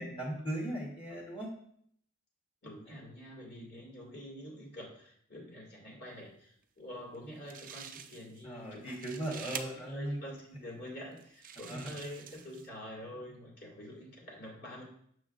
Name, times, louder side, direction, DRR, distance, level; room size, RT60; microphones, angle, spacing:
voice 1, 0.0-1.5 2.9-3.0 3.4-3.5 8.4-10.2 11.7-11.9, right 1 dB, 25° left, -2 dB, 1.2 m, -38 dB
voice 2, 2.6-9.0 9.3-14.8, equal, 50° left, -2 dB, 2.3 m, -47 dB
sound 1, 7.1-7.2 7.5-8.4 8.8-9.6 10.4-10.5 11.2-12.7, right 8 dB, 40° right, 0.4 m, -46 dB
7.1 x 6.1 x 2.5 m, 0.66 s
head